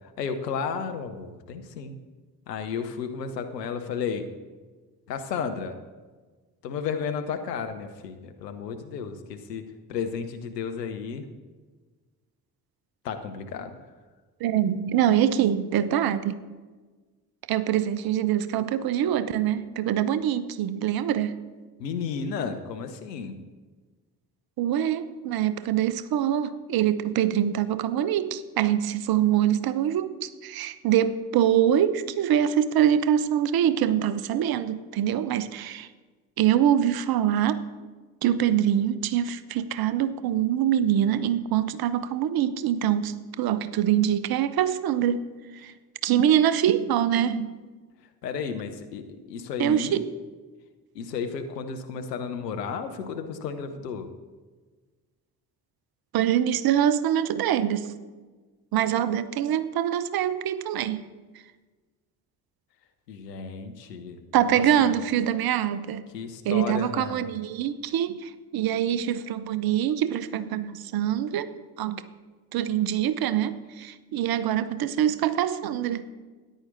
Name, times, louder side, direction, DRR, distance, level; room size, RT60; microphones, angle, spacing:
voice 1, 0.0-2.0 2.5-4.3 5.1-5.8 6.6-11.3 13.0-13.8 21.8-23.3 48.2-50.0 50.9-54.1 63.1-65.0 66.1-67.3, left 6 dB, 80° left, 7 dB, 0.9 m, -33 dB
voice 2, 14.4-16.4 17.5-21.4 24.6-35.9 36.4-37.6 38.2-45.2 45.6-45.7 46.0-47.6 49.6-50.1 56.1-57.9 58.7-61.0 64.3-66.0 66.4-71.5 71.8-72.0 72.5-76.0, right 10 dB, 50° right, 14 dB, 0.8 m, -24 dB
14.0 x 10.0 x 3.9 m, 1.3 s
figure-of-eight pair, 40°, 48 cm